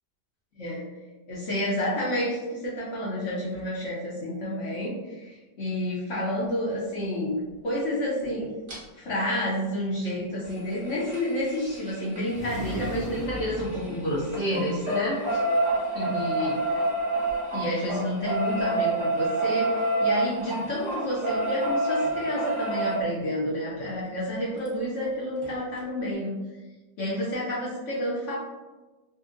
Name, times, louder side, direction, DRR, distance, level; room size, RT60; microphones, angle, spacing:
voice 1, 0.6-0.9 1.3-8.5 8.9-15.4 15.9-16.6 17.5-26.3 27.0-28.3, left 1 dB, 65° left, -6 dB, 0.7 m, -29 dB
sound 1, 8.7-8.8 10.4-13.9 14.2-23.0 24.6-24.7 25.0-25.1 25.4-25.5, right 2 dB, 45° right, 0.7 m, -28 dB
sound 2, 12.2-14.8, right 1 dB, ahead, 0.9 m, -38 dB
2.8 x 2.7 x 2.4 m, 1.2 s
omnidirectional pair, 1.9 m